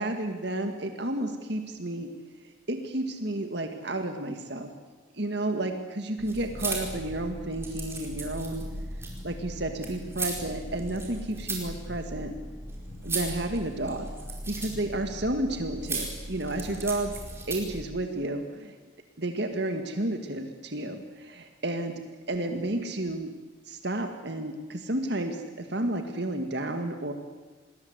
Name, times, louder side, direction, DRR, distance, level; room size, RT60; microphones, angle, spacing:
voice 1, 0.0-2.1 2.7-4.7 5.1-8.6 9.2-12.3 13.0-14.1 14.5-17.1 17.5-18.7 19.2-22.0 22.3-23.3 23.7-27.1, right 1 dB, 55° right, 6 dB, 2.2 m, -31 dB
sound 1, 6.2-17.8, right 2 dB, 10° right, 4.9 m, -37 dB
28.0 x 20.5 x 8.2 m, 1.3 s
head